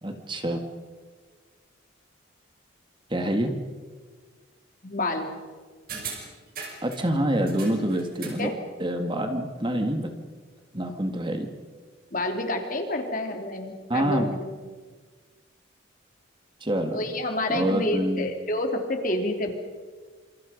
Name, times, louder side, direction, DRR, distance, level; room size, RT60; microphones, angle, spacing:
voice 1, 0.0-0.6 3.1-3.5 6.8-8.5 8.8-10.1 10.7-11.5 13.9-14.3 16.6-17.0 17.5-18.3, right 1 dB, 25° right, 5 dB, 2.0 m, -26 dB
voice 2, 4.8-5.3 8.4-8.5 12.1-14.4 16.9-19.5, left 1 dB, 45° left, 4 dB, 3.4 m, -28 dB
sound 1, 5.9-7.0 7.5-8.5 8.8-8.9, right 5 dB, 50° right, 5.8 m, -39 dB
27.5 x 27.5 x 5.3 m, 1.5 s
head